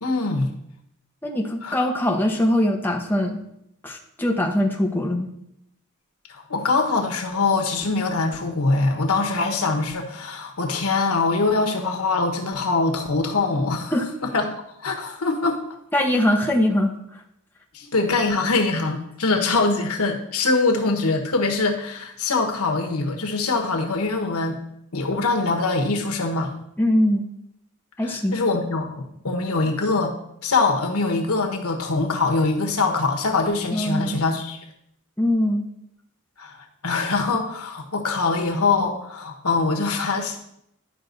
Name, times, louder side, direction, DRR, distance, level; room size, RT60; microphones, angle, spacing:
voice 1, 0.0-0.5 1.6-1.8 6.3-13.9 14.2-14.5 14.8-15.6 17.7-24.6 24.9-26.5 28.1-30.2 30.4-34.6 36.4-36.5 36.8-40.4, left 3 dB, 90° left, 3 dB, 1.3 m, -23 dB
voice 2, 1.2-3.4 3.8-5.3 13.9-14.1 15.9-17.2 26.8-27.2 28.0-28.4 33.7-34.2 35.2-35.7, left 1 dB, 10° left, 1 dB, 0.8 m, -22 dB
11.0 x 5.3 x 4.0 m, 0.76 s
head